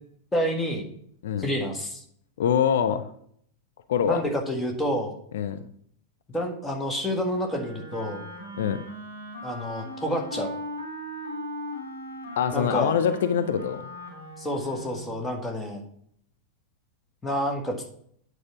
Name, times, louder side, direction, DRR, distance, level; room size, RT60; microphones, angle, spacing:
voice 1, 0.3-0.9 1.4-2.0 4.1-5.2 6.3-8.2 9.4-10.5 12.5-12.9 14.4-15.8 17.2-17.8, equal, 10° left, 3 dB, 1.7 m, -28 dB
voice 2, 2.4-3.1 3.9-4.2 5.3-5.6 8.6-8.8 12.4-13.8, left 8 dB, 60° left, 9 dB, 0.5 m, -24 dB
Wind instrument woodwind instrument, 7.4-15.3, equal, 90° left, 3.7 m, -39 dB
8.8 x 4.8 x 5.7 m, 0.66 s
figure-of-eight pair, 90°, 0 cm